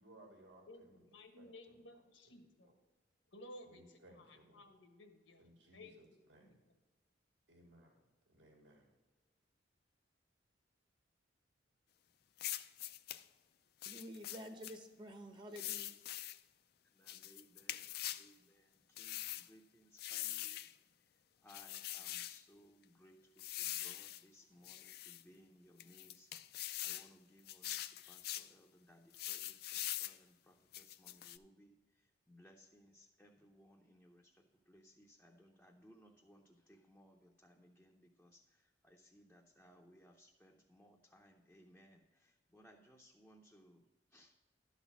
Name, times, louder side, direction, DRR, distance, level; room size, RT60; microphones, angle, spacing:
voice 1, 0.0-1.0 1.4-1.8 3.6-4.6 5.4-6.6 7.5-8.0 8.3-8.9, right 1 dB, 70° right, 1.6 m, -62 dB
voice 2, 0.7-2.4 3.3-5.5 5.7-6.6, left 1 dB, 85° left, 1.3 m, -57 dB
sound 1, 12.4-13.2 13.8-14.8 15.6-16.4 17.1-18.3 19.0-19.5 20.0-20.7 21.5-22.4 23.4-24.2 24.6-25.2 25.8-27.1 27.5-28.5 29.1-30.2 30.7-31.4, left 14 dB, 55° left, 0.4 m, -43 dB
voice 3, 13.8-15.9, equal, 25° right, 0.9 m, -50 dB
voice 4, 17.0-20.6 21.4-23.2 23.6-26.3 26.8-31.7 32.3-43.8 44.1-44.4, equal, 5° left, 0.6 m, -64 dB
12.0 x 4.1 x 7.1 m
head